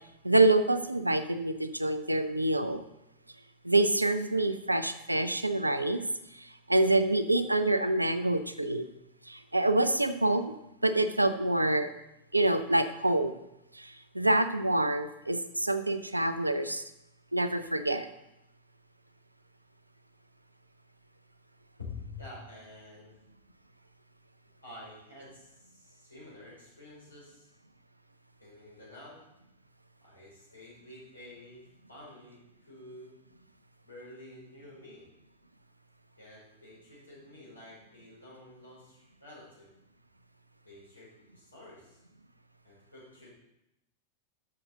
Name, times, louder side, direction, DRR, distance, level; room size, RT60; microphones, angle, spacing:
voice 1, 0.2-2.8 3.6-6.0 6.4-8.9 9.3-10.5 10.8-11.9 12.3-13.4 13.7-16.8 17.3-18.1, right 2 dB, 85° right, 11 dB, 0.5 m, -26 dB
voice 2, 21.8-23.2 24.6-27.5 28.4-29.2 30.0-33.1 33.8-35.0 36.2-39.7 40.6-42.0 42.6-43.3, left 2 dB, 80° left, -5 dB, 4.0 m, -49 dB
11.5 x 6.4 x 3.9 m, 0.86 s
figure-of-eight pair, 90°, 0 cm